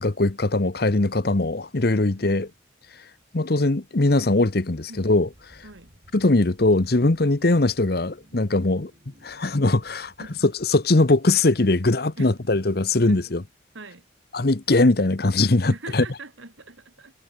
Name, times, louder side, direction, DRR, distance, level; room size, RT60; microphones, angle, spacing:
voice 1, 0.0-2.5 3.3-5.3 6.1-8.9 9.2-10.1 10.4-13.4 14.3-16.0, left 2 dB, 55° left, 1.0 m, -21 dB
voice 2, 1.9-2.4 4.9-5.1 5.6-5.9 10.2-10.5 12.2-12.3 13.1-13.2 13.7-14.1 15.7-17.1, right 3 dB, 80° right, 2.9 m, -42 dB
sound 1, 4.9-11.7, equal, 40° right, 5.2 m, -56 dB
head